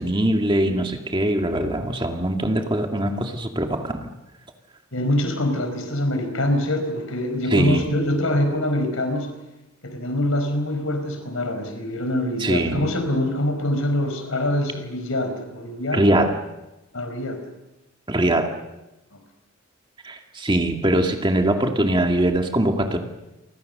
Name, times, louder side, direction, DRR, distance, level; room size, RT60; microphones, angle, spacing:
voice 1, 0.0-4.1 7.5-7.9 12.4-12.9 15.9-16.4 18.1-18.5 20.0-23.0, right 1 dB, 20° right, 4 dB, 2.1 m, -22 dB
voice 2, 4.9-9.3 9.8-16.0 16.9-17.4, left 1 dB, 70° left, 7 dB, 5.0 m, -24 dB
29.5 x 25.5 x 6.7 m, 1.0 s
head